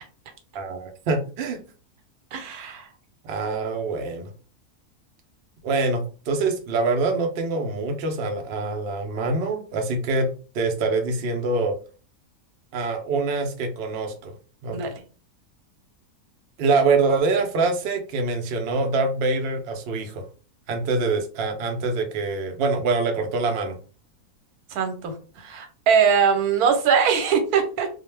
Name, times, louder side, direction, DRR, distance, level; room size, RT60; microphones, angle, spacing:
voice 1, 0.5-1.6 3.2-4.3 5.6-10.3 10.5-11.8 12.7-14.3 14.6-14.9 16.6-20.2 20.7-23.8, right 3 dB, 65° right, 4 dB, 0.6 m, -25 dB
voice 2, 2.3-2.9 14.7-14.9 24.7-27.9, right 6 dB, 85° right, 6 dB, 1.1 m, -22 dB
2.4 x 2.1 x 3.1 m, 0.37 s
omnidirectional pair, 1.6 m